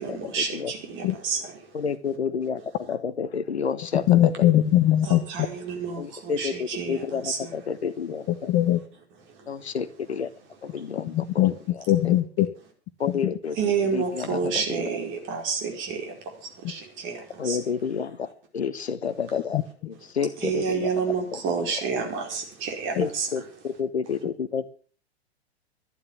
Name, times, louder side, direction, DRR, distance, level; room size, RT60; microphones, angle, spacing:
voice 1, 0.0-1.4 5.0-7.5 13.6-16.0 16.7-17.2 17.4-17.6 20.4-23.3, right 5 dB, 35° right, 4 dB, 4.9 m, -29 dB
voice 2, 1.7-2.6 2.9-4.3 6.0-8.5 9.5-10.3 10.6-11.2 11.7-12.2 13.0-13.6 13.9-14.6 17.4-18.3 18.5-20.9 21.3-21.4 22.9-24.7, left 6 dB, 75° left, 12 dB, 1.3 m, -30 dB
voice 3, 4.1-5.2 8.3-8.8 11.1-11.5 11.9-12.5 13.2-13.3 19.5-19.6 22.9-23.0, left 13 dB, 35° left, 11 dB, 1.3 m, -20 dB
13.0 x 11.0 x 7.2 m, 0.41 s
figure-of-eight pair, 100°, 33 cm